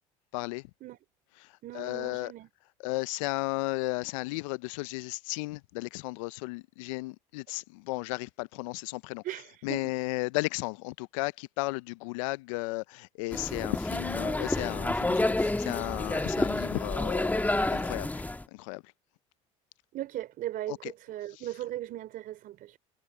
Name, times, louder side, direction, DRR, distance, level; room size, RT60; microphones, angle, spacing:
voice 1, 0.3-0.6 1.7-2.3 2.8-9.2 9.6-18.1 18.5-18.8 20.7-20.9, left 24 dB, 80° left, 0.5 m, -34 dB
voice 2, 1.6-2.5 9.2-10.1 19.9-22.8, right 14 dB, 60° right, 4.4 m, -38 dB
sound 1, 13.3-18.4, left 2 dB, 10° left, 1.6 m, -29 dB
hypercardioid pair, 75°, 17 cm